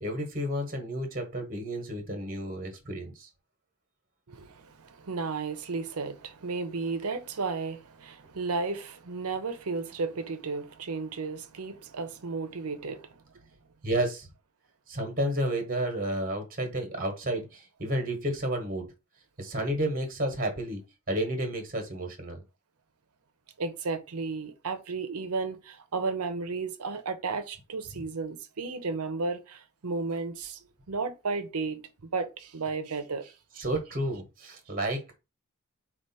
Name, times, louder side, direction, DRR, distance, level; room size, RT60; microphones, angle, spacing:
voice 1, 0.0-3.3 13.8-14.3 14.9-18.9 19.4-20.8 21.1-22.4 33.6-35.2, right 1 dB, 40° right, 1.1 m, -31 dB
voice 2, 4.3-13.2 23.6-33.6, right 4 dB, 85° right, 0.7 m, -34 dB
4.7 x 2.5 x 4.1 m
head